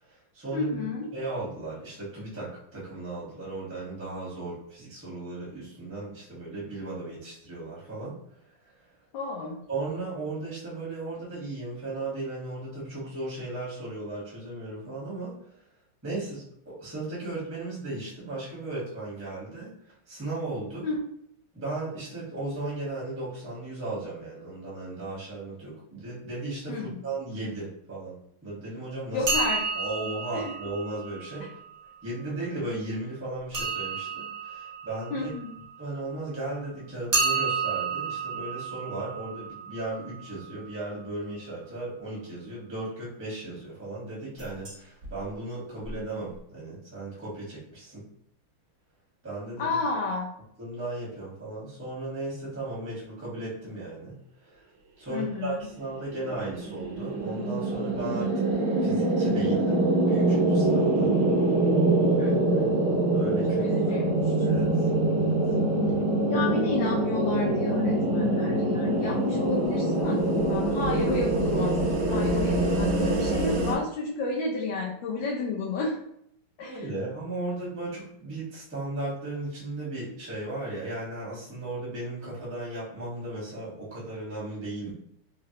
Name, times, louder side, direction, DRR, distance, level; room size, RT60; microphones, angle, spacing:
voice 1, 0.0-0.9 1.1-8.2 8.4-8.9 9.7-15.3 16.0-20.8 21.5-29.2 29.7-31.6 32.0-35.3 35.8-48.1 49.2-49.8 50.6-54.6 55.0-58.5 58.8-61.1 63.1-65.4 76.6-84.9, right 2 dB, 10° right, -7 dB, 0.8 m, -36 dB
voice 2, 0.5-1.1 9.1-9.6 20.8-21.0 26.7-27.0 29.1-29.6 30.3-30.6 35.1-35.5 49.6-50.3 55.1-55.7 62.2-62.8 63.6-64.3 66.3-71.8 72.1-76.0 76.6-76.9, left 3 dB, 75° left, -2 dB, 1.2 m, -31 dB
sound 1, 29.2-32.0 33.5-36.2 37.1-40.9 44.4-44.7 45.0-45.1 45.8-45.9 46.2-46.3, right 4 dB, 90° right, 0.4 m, -32 dB
sound 2, 56.0-73.7, right 2 dB, 65° right, 1.4 m, -24 dB
3.8 x 2.1 x 2.8 m, 0.71 s
omnidirectional pair, 2.3 m